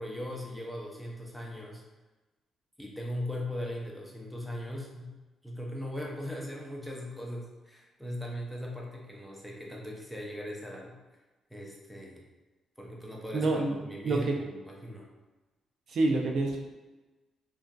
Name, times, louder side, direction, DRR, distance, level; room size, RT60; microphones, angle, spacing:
voice 1, 0.0-1.8 2.8-5.1 5.4-11.0 11.5-12.2 12.8-15.1, left 1 dB, ahead, -2 dB, 0.5 m, -39 dB
voice 2, 13.3-13.8 14.0-14.4 15.9-16.6, right 2 dB, 60° right, 0 dB, 0.4 m, -27 dB
2.5 x 2.3 x 2.2 m, 1.2 s
cardioid pair, 90°, 0 cm